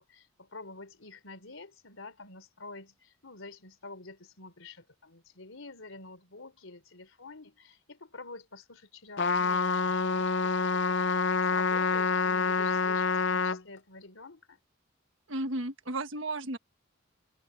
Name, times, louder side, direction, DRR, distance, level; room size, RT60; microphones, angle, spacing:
voice 1, 0.0-14.6, left 3 dB, 75° left, 3.5 m, -48 dB
Trumpet, 9.2-13.6, left 4 dB, 60° left, 0.6 m, -27 dB
voice 2, 15.3-16.6, right 2 dB, 65° right, 1.5 m, -33 dB
open air
head